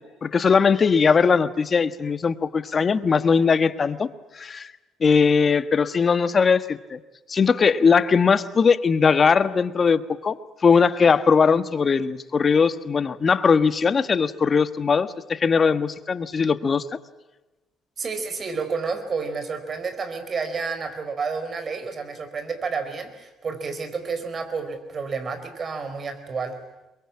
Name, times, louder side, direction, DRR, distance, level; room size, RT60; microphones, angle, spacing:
voice 1, 0.0-4.1 4.3-4.7 5.0-7.0 7.3-10.4 10.6-16.8, left 5 dB, 40° left, 12 dB, 1.4 m, -20 dB
voice 2, 18.0-26.6, right 5 dB, 45° right, 9 dB, 4.5 m, -30 dB
23.0 x 22.5 x 8.7 m, 1.1 s
supercardioid pair, 65°, 0 cm